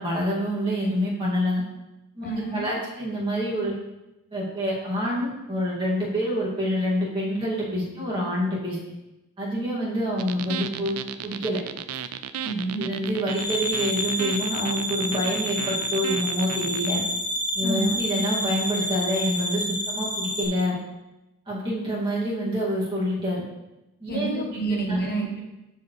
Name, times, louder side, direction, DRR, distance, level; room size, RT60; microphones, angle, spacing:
voice 1, 0.0-1.6 2.1-3.7 4.3-8.8 9.4-11.0 11.2-11.6 12.8-17.0 17.5-20.8 21.5-23.4 24.0-25.0, equal, 25° right, -7 dB, 2.4 m, -27 dB
voice 2, 2.2-2.7 12.4-12.9 17.6-18.0 24.1-25.4, right 3 dB, 45° left, 2 dB, 0.9 m, -28 dB
sound 1, 10.2-16.9, right 9 dB, 80° right, 0.4 m, -35 dB
sound 2, 13.3-20.4, equal, 85° left, 2.0 m, -29 dB
12.5 x 4.6 x 3.3 m, 0.95 s
head